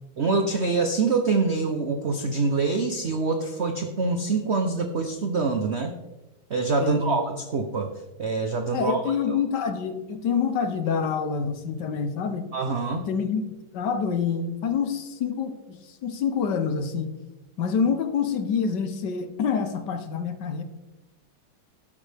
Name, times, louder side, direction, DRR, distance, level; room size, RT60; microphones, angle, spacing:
voice 1, 0.2-5.9 6.5-7.9 8.2-9.0 12.5-13.1, right 4 dB, 90° right, 5 dB, 0.5 m, -25 dB
voice 2, 6.8-7.2 8.7-12.5 12.9-13.4 13.7-17.2 17.6-20.6, left 6 dB, 65° left, 8 dB, 1.3 m, -27 dB
12.5 x 8.8 x 3.4 m, 1.1 s
omnidirectional pair, 2.3 m